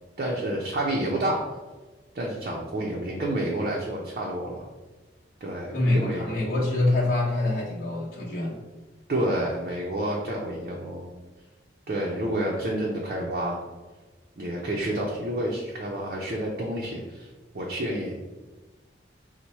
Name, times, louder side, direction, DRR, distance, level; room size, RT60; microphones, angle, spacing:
voice 1, 0.2-1.6 2.1-4.7 5.4-6.4 9.1-11.1 11.9-13.6 14.4-17.3 17.5-18.2, right 1 dB, 50° right, -3 dB, 0.5 m, -29 dB
voice 2, 5.7-8.6, left 2 dB, 50° left, -6 dB, 1.0 m, -25 dB
4.5 x 2.1 x 4.1 m, 1.2 s
head